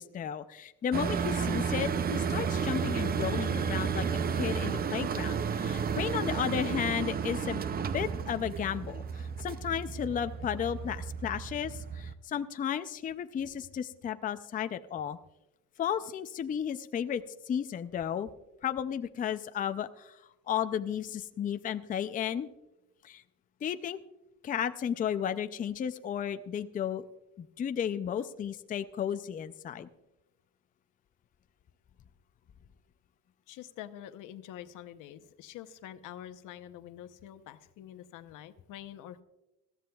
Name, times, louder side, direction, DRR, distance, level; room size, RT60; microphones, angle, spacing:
voice 1, 0.0-4.1 4.4-7.6 7.9-15.2 15.8-18.3 18.6-20.2 20.5-22.5 23.0-23.2 23.6-24.0 24.4-27.0 27.4-29.9, left 9 dB, 25° left, 10 dB, 0.4 m, -33 dB
sound 1, 0.9-12.1, right 6 dB, 30° right, 0.5 m, -32 dB
voice 2, 33.5-39.2, left 11 dB, 85° left, 10 dB, 0.8 m, -46 dB
20.5 x 14.0 x 2.3 m, 0.96 s
cardioid pair, 150°, 31 cm